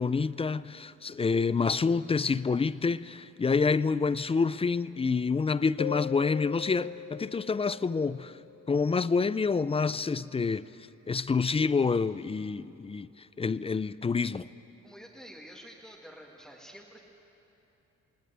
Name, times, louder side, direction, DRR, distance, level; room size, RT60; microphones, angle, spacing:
voice 1, 0.0-8.3 8.7-10.7 11.1-13.1 13.4-14.5, left 4 dB, 20° left, 17 dB, 0.4 m, -27 dB
sound 1, 5.8-9.1, left 13 dB, 85° left, 0.8 m, -41 dB
voice 2, 14.8-17.0, equal, ahead, -2 dB, 2.3 m, -49 dB
18.5 x 18.5 x 9.5 m, 2.9 s
cardioid pair, 90°, 30 cm